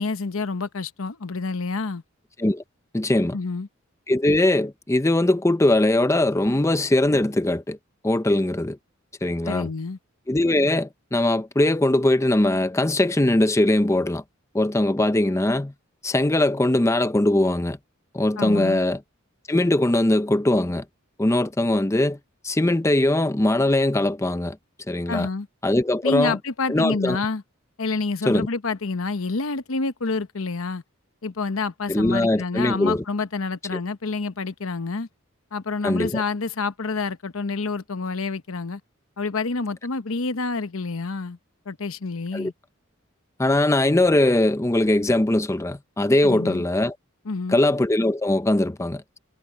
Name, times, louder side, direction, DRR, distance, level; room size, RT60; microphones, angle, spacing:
voice 1, 0.0-2.0 3.3-3.7 9.4-10.0 18.4-18.8 25.1-25.5 26.0-27.4 27.8-30.8 31.2-35.1 35.5-38.8 39.2-41.4 41.7-42.5 46.2-46.6 47.3-47.6, left 3 dB, 85° left, 1.0 m, -28 dB
voice 2, 2.9-3.4 4.1-7.8 8.0-8.8 9.2-9.7 10.3-14.2 14.5-15.7 16.0-17.8 18.1-19.0 19.5-20.8 21.2-22.2 22.4-24.6 24.9-25.3 25.6-26.4 26.7-27.2 28.3-28.5 31.9-33.0 33.7-33.8 35.8-36.2 42.3-42.5 43.4-47.0 47.5-49.2, left 1 dB, 15° left, 0.6 m, -21 dB
head